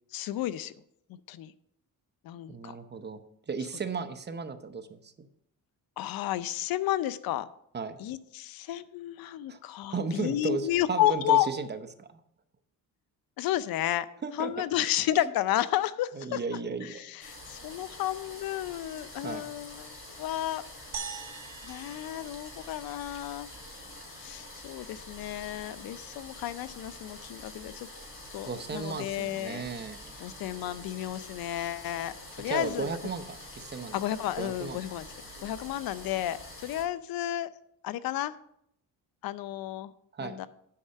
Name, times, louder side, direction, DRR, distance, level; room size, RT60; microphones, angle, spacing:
voice 1, 0.1-0.7 1.3-1.5 2.2-2.7 6.0-7.5 8.0-11.5 13.4-14.1 14.4-16.4 16.8-20.6 21.6-23.5 24.2-27.9 28.3-29.6 30.2-32.9 33.9-35.1 35.4-37.5 37.8-38.3 39.2-39.9 40.2-40.5, left 13 dB, 80° left, 16 dB, 0.6 m, -32 dB
voice 2, 2.5-3.2 3.5-5.3 7.7-8.0 9.5-9.6 9.9-12.2 14.2-14.5 14.9-15.1 16.1-17.1 19.2-19.5 28.4-30.0 32.5-34.0 34.4-34.8 35.4-35.5 40.1-40.4, right 4 dB, 30° right, 9 dB, 0.8 m, -35 dB
sound 1, 17.2-36.8, left 1 dB, 35° left, 3.8 m, -46 dB
sound 2, 20.9-23.4, right 7 dB, 50° right, 1.1 m, -42 dB
8.5 x 5.5 x 6.5 m, 0.74 s
cardioid pair, 105°, 35 cm